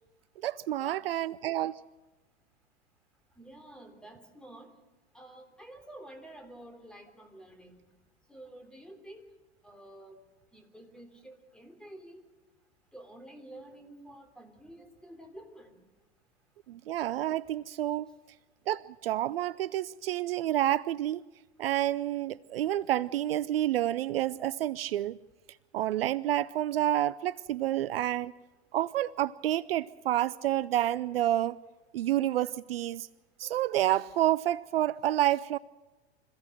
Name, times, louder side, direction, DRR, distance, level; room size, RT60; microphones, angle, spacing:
voice 1, 0.4-1.8 16.7-18.1 18.7-21.2 21.6-25.2 25.7-28.3 28.7-31.6 31.9-33.1 33.4-35.6, right 13 dB, 65° right, 0.5 m, -29 dB
voice 2, 3.4-4.7 5.1-7.8 8.3-9.2 9.6-10.2 10.5-12.2 12.9-15.8, right 1 dB, ahead, 3.5 m, -50 dB
26.0 x 15.5 x 6.5 m
figure-of-eight pair, 90°, 32 cm